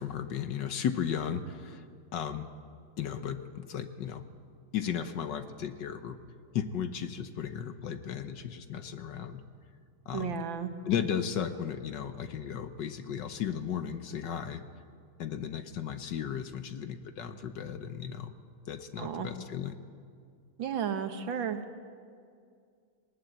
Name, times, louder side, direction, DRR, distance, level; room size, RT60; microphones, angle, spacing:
voice 1, 0.0-1.8 2.1-2.5 3.0-4.2 4.7-6.2 6.5-9.4 10.1-10.4 10.8-14.6 15.2-18.3 18.7-19.8, left 8 dB, 65° left, 10 dB, 1.5 m, -35 dB
voice 2, 10.1-10.7 19.0-19.3 20.6-21.6, right 7 dB, 70° right, 8 dB, 1.8 m, -33 dB
19.5 x 19.0 x 8.0 m, 2.2 s
omnidirectional pair, 2.3 m